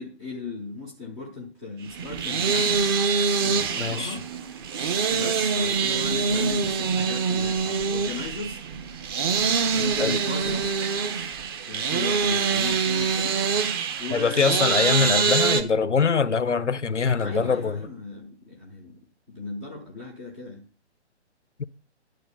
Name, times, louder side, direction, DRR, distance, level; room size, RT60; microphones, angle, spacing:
voice 1, 0.0-2.8 3.4-4.3 5.1-8.6 9.7-10.7 11.7-13.4 14.0-14.7 17.2-18.9 19.3-20.6, left 3 dB, ahead, 0.4 m, -36 dB
sound 1, 1.9-15.6, right 5 dB, 20° right, 0.8 m, -25 dB
voice 2, 3.8-4.2 10.0-10.2 10.5-10.6 14.1-17.8 21.6-21.7, left 5 dB, 85° left, 0.8 m, -23 dB
11.0 x 4.2 x 6.8 m
figure-of-eight pair, 140°, 35 cm